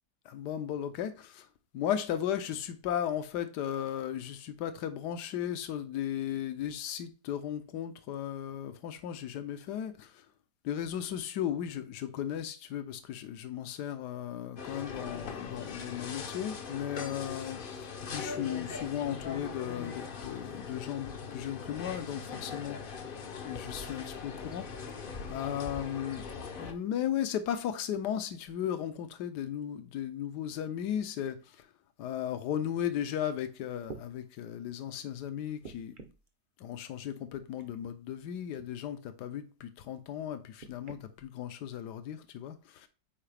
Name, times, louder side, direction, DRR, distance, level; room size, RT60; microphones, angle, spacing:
voice 1, 0.2-1.5 1.7-10.2 10.6-22.8 23.4-24.7 25.3-26.3 26.6-31.7 32.0-35.9 36.6-42.9, left 10 dB, 75° left, 1.3 m, -36 dB
sound 1, 14.6-26.7, left 5 dB, 50° left, 0.6 m, -41 dB
sound 2, 33.3-33.4 33.8-34.1 35.6-36.3 37.6-37.9 38.5-38.7 40.6-41.0 41.9-42.0, right 4 dB, 45° right, 0.7 m, -47 dB
7.4 x 4.7 x 3.4 m
omnidirectional pair, 1.8 m